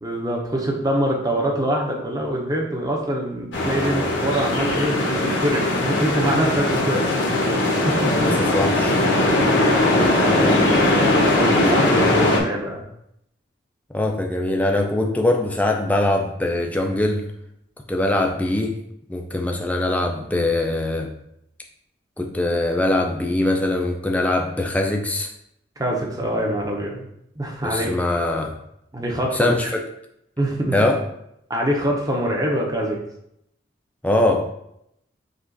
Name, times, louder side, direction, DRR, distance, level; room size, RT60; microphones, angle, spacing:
voice 1, 0.0-7.1 7.5-8.1 9.2-12.8 25.8-27.1 27.4-27.9 28.9-29.7 30.4-30.8 31.5-33.0, right 1 dB, 20° right, -1 dB, 0.7 m, -25 dB
sound 1, 3.5-12.4, left 1 dB, 75° left, 1.0 m, -19 dB
voice 2, 8.1-9.0 13.9-17.3 17.9-18.8 19.1-21.1 22.2-25.3 27.6-28.5 29.3-29.8 30.7-31.0 34.0-34.5, left 1 dB, 10° left, 2 dB, 0.4 m, -22 dB
5.2 x 2.4 x 3.9 m, 0.77 s
head